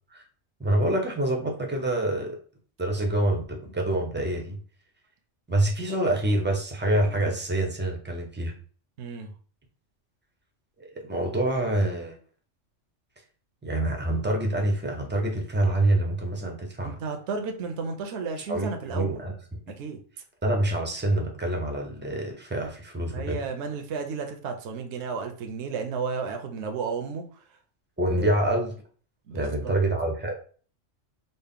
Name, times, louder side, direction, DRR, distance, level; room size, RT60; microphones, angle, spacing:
voice 1, 0.6-2.4 2.8-4.6 5.5-8.5 10.8-12.2 13.6-17.0 18.5-19.3 19.7-19.8 20.4-23.4 28.0-28.7 29.3-30.3, right 1 dB, 15° right, 1 dB, 0.4 m, -26 dB
voice 2, 9.0-9.3 16.8-19.2 19.8-20.0 23.1-27.2 28.2-28.3 29.3-29.7, right 5 dB, 70° right, 5 dB, 0.9 m, -33 dB
4.1 x 2.0 x 3.5 m, 0.42 s
omnidirectional pair, 1.3 m